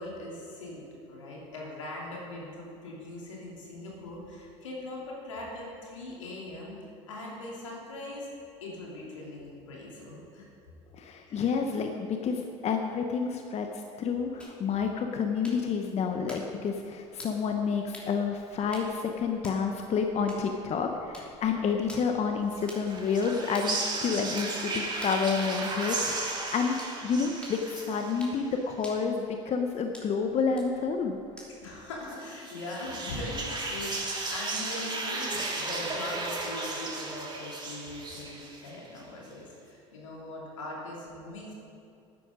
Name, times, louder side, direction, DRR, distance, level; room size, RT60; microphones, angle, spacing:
voice 1, 0.0-6.8 7.1-8.3 8.6-10.5 11.3-11.5 31.6-41.5, left 1 dB, 85° left, -3 dB, 2.8 m, -40 dB
voice 2, 11.0-13.7 14.0-26.8 27.0-31.2, left 5 dB, 45° left, 4 dB, 1.0 m, -29 dB
sound 1, 14.4-31.8, equal, 5° left, 3.1 m, -51 dB
sound 2, 22.6-28.6 32.0-39.0, right 3 dB, 30° right, 2.6 m, -35 dB
11.5 x 9.6 x 5.1 m, 2.6 s
hypercardioid pair, 70°, 16 cm